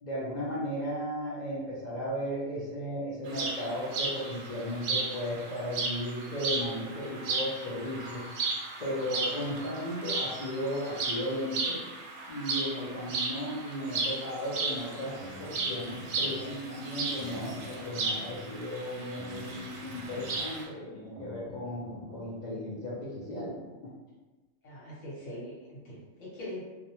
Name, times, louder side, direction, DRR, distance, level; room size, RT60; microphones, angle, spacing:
voice 1, 0.0-8.2 8.8-11.8 12.3-23.9, equal, 50° left, -7 dB, 0.5 m, -35 dB
sound 1, 3.3-20.6, right 3 dB, 90° right, 1.0 m, -35 dB
sound 2, 14.9-22.6, left 2 dB, 60° right, 0.5 m, -47 dB
voice 2, 24.6-26.7, left 1 dB, 75° left, -7 dB, 1.2 m, -42 dB
2.4 x 2.1 x 2.8 m, 1.2 s
omnidirectional pair, 1.3 m